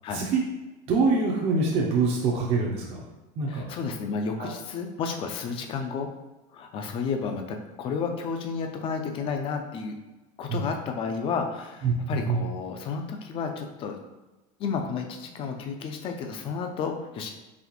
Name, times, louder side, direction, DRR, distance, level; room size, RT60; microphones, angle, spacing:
voice 1, 0.9-3.0 3.4-3.6 4.4-4.5 10.5-10.6 11.8-12.4, right 4 dB, 35° right, -3 dB, 0.6 m, -25 dB
voice 2, 3.5-6.1 6.5-10.0 10.4-14.0 14.6-17.3, left 5 dB, 30° left, 4 dB, 0.4 m, -31 dB
4.1 x 3.0 x 3.0 m, 1.1 s
cardioid pair, 170°, 19 cm